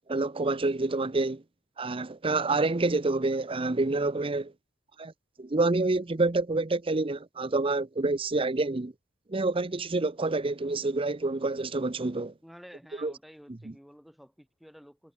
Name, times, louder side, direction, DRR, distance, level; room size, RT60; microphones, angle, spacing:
voice 1, 0.1-1.4 1.8-4.5 5.0-5.1 5.4-8.9 9.3-12.3 13.0-13.1, right 2 dB, 30° right, 0.7 m, -27 dB
voice 2, 12.4-15.1, equal, ahead, 6.7 m, -51 dB
head